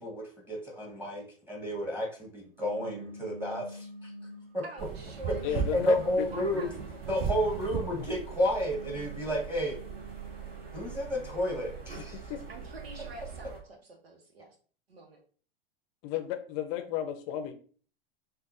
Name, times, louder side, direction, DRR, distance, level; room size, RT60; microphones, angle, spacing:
voice 1, 0.0-4.1 4.5-4.6 5.7-6.7 7.1-9.8 10.7-12.2, equal, 10° right, -1 dB, 1.3 m, -31 dB
sound 1, 2.6-4.6 5.2-7.9 8.5-10.8, right 2 dB, 30° right, 1.0 m, -47 dB
voice 2, 4.6-5.6 6.3-6.8 12.5-14.6 14.9-15.2, right 2 dB, 80° right, 3 dB, 1.1 m, -46 dB
sound 2, 4.8-13.6, right 6 dB, 45° right, 1.8 m, -39 dB
voice 3, 5.4-6.2 6.5-6.7 8.0-8.1 12.3-12.4 16.0-17.5, left 10 dB, 40° left, 8 dB, 0.6 m, -33 dB
6.3 x 2.5 x 2.6 m, 0.42 s
hypercardioid pair, 95°, 30 cm